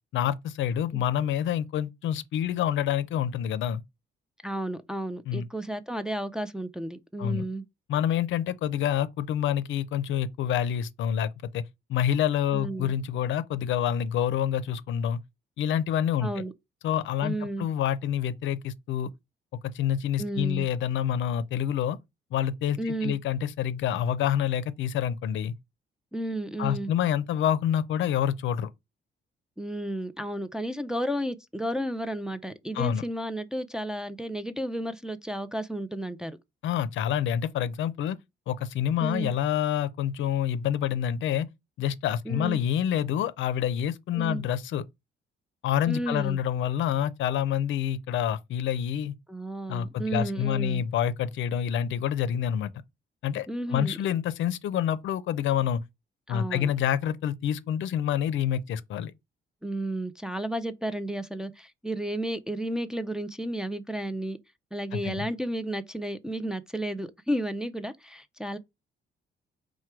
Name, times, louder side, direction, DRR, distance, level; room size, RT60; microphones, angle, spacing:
voice 1, 0.1-3.8 5.3-5.5 7.2-7.4 7.9-11.6 11.9-15.2 15.6-16.4 16.8-19.1 19.6-22.0 22.3-25.5 26.6-28.7 32.7-33.0 36.6-38.2 38.5-41.5 41.8-44.8 45.6-49.2 49.7-52.7 53.2-55.8 56.3-59.1 64.9-65.3, left 9 dB, 75° left, 0.5 m, -27 dB
voice 2, 4.4-7.6 12.5-12.9 16.2-16.5 17.2-17.7 20.2-20.7 22.8-23.2 26.1-26.9 29.6-36.4 39.0-39.3 42.3-42.6 44.1-44.4 45.9-46.4 49.3-50.8 53.5-53.9 56.3-56.7 59.6-64.4 64.7-68.6, right 1 dB, 5° right, 0.4 m, -32 dB
4.5 x 2.2 x 4.4 m
cardioid pair, 90°, 20 cm